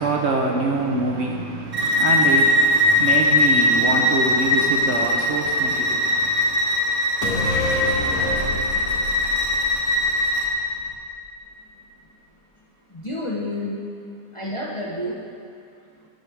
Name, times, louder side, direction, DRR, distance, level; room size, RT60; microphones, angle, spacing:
voice 1, 0.0-6.6, right 3 dB, 60° right, 1 dB, 0.8 m, -25 dB
Bowed string instrument, 1.7-10.5, left 1 dB, 40° right, 1.3 m, -20 dB
sound 1, 7.2-10.8 11.1-11.2, left 2 dB, 85° left, 1.4 m, -28 dB
voice 2, 12.9-13.9 14.3-15.2 15.9-16.1, left 1 dB, 30° left, -4 dB, 0.6 m, -30 dB
10.0 x 7.2 x 3.4 m, 2.3 s
omnidirectional pair, 1.5 m